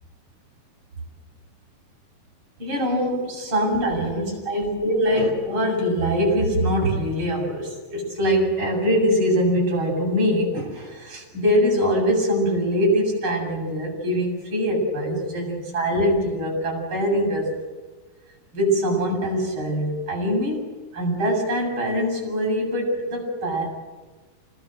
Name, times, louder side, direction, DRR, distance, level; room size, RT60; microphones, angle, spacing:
voice 1, 2.6-17.5 18.5-20.7 20.9-23.8, equal, 30° right, -1 dB, 8.4 m, -23 dB
27.0 x 20.0 x 7.9 m, 1.3 s
omnidirectional pair, 4.3 m